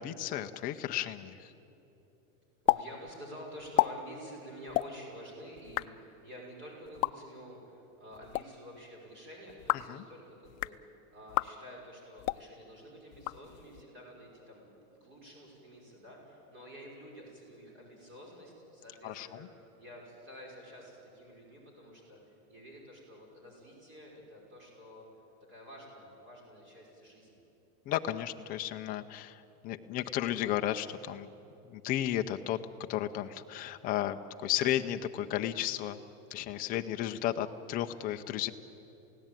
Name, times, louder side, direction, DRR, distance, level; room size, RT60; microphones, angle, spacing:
voice 1, 0.0-1.5 9.9-10.0 19.0-19.5 27.9-31.3 31.6-32.6 32.9-36.0 36.3-38.5, left 12 dB, 20° left, 7 dB, 0.5 m, -33 dB
voice 2, 2.6-25.0 25.5-27.4, equal, 25° right, -1 dB, 5.7 m, -50 dB
sound 1, 2.7-2.8 3.1-3.2 3.6-3.9 4.7-4.9 5.6-5.9 6.9-7.1 8.1-8.4 9.5-9.9 10.5-10.8 11.3-11.5 12.2-12.4 13.1-13.8, left 20 dB, 60° left, 0.6 m, -30 dB
27.5 x 17.5 x 9.0 m, 3.0 s
supercardioid pair, 165°, 46 cm